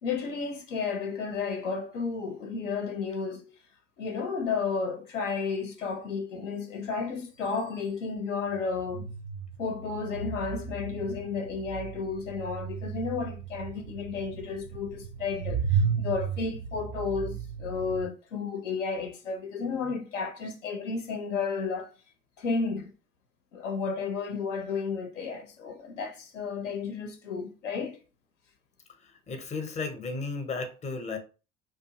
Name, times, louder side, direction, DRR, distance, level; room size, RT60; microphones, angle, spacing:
voice 1, 0.0-3.4 4.0-9.1 9.6-21.9 22.4-22.9 23.5-28.0, left 5 dB, 80° left, 0.6 m, -32 dB
sound 1, 7.4-7.5 8.5-18.1, right 6 dB, 60° right, 0.4 m, -34 dB
voice 2, 29.0-31.2, left 3 dB, 20° left, 0.6 m, -34 dB
2.7 x 2.2 x 2.7 m
figure-of-eight pair, 65°, 36 cm